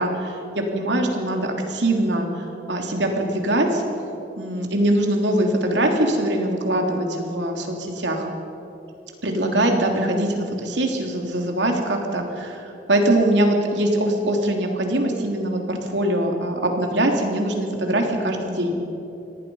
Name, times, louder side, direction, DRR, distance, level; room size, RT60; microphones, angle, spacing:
voice 1, 0.0-2.3 2.7-3.8 4.4-8.3 9.2-18.8, right 1 dB, 85° right, 2 dB, 3.1 m, -22 dB
25.0 x 19.0 x 5.5 m, 3.0 s
head